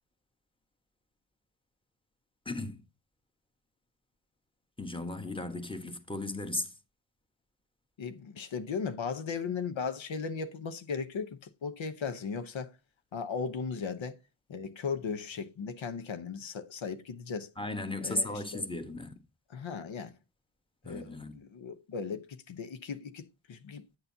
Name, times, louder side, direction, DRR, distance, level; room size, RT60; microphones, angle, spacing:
voice 1, 2.4-2.8 4.8-6.7 17.6-19.1 20.8-21.3, left 2 dB, 10° left, 1.3 m, -35 dB
voice 2, 8.0-12.7 13.1-14.2 14.5-17.5 18.0-18.7 19.5-20.1 20.8-24.0, left 5 dB, 80° left, 0.9 m, -37 dB
9.4 x 6.7 x 2.8 m
wide cardioid pair, 70°, 46 cm